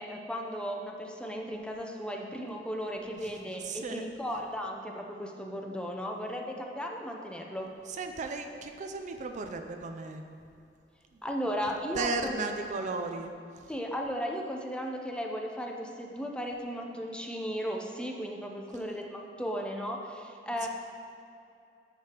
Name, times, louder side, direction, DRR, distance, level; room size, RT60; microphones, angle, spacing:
voice 1, 0.0-7.7 11.2-12.4 13.7-20.7, equal, 5° left, 1 dB, 0.6 m, -36 dB
voice 2, 3.6-4.1 7.9-10.2 12.0-13.3 20.6-20.7, right 3 dB, 45° right, 6 dB, 0.4 m, -35 dB
10.5 x 6.7 x 3.0 m, 2.6 s
head